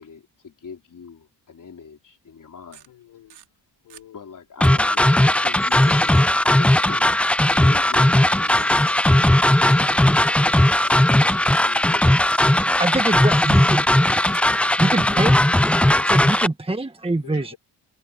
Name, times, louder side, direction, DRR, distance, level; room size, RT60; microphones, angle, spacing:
voice 1, 0.0-2.9 4.1-6.2 6.4-7.0 7.4-10.0 10.8-12.3, left 6 dB, 50° left, 4.1 m, -42 dB
sound 1, 2.7-4.1 4.6-5.2 7.0-7.1 8.2-8.3 8.5-8.6 9.3-9.6 10.1-10.3 10.8-12.0 12.3-12.9 14.0-14.1 14.3-16.0, right 11 dB, 85° right, 3.8 m, -49 dB
voice 2, 2.9-3.5 3.8-4.3 4.9-5.0 13.1-13.3 13.9-15.1 15.7-16.4 17.2-17.6, left 12 dB, 90° left, 5.8 m, -47 dB
sound 2, 4.6-16.5, left 1 dB, 5° left, 0.4 m, -17 dB
Cricket, 5.1-16.2, left 3 dB, 30° left, 7.2 m, -50 dB
voice 3, 12.8-13.8 14.8-15.6 16.1-17.5, right 2 dB, 15° right, 1.4 m, -24 dB
cardioid pair, 65°, 39 cm